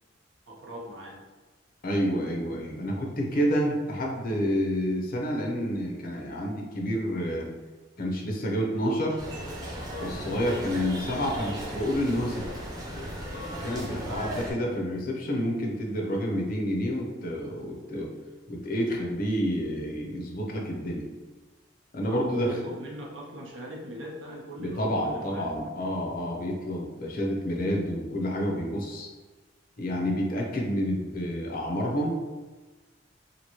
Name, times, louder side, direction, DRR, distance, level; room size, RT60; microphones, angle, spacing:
voice 1, 0.5-1.2 14.0-14.5 22.0-25.7, equal, 85° right, -2 dB, 0.7 m, -40 dB
voice 2, 1.8-7.5 8.0-9.2 10.0-12.5 13.5-18.1 18.5-21.1 21.9-22.6 24.6-29.1 29.8-32.1, equal, 50° left, 0 dB, 0.6 m, -29 dB
sound 1, 9.2-14.5, equal, 20° right, 0.7 m, -36 dB
2.9 x 2.6 x 2.9 m, 1.3 s
head